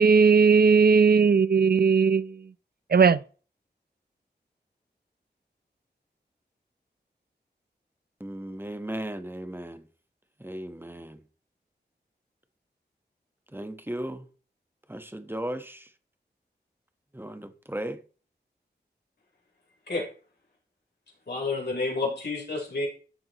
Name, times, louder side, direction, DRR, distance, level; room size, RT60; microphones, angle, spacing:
voice 1, 0.0-2.3 2.9-3.2, right 5 dB, 60° right, 0.6 m, -18 dB
voice 2, 8.2-9.9 10.4-11.2 13.5-14.3 14.9-15.9 17.1-18.0, right 1 dB, 10° right, 1.3 m, -36 dB
voice 3, 21.3-22.9, left 3 dB, 70° left, 3.8 m, -29 dB
12.0 x 7.3 x 3.1 m
wide cardioid pair, 55°, 18 cm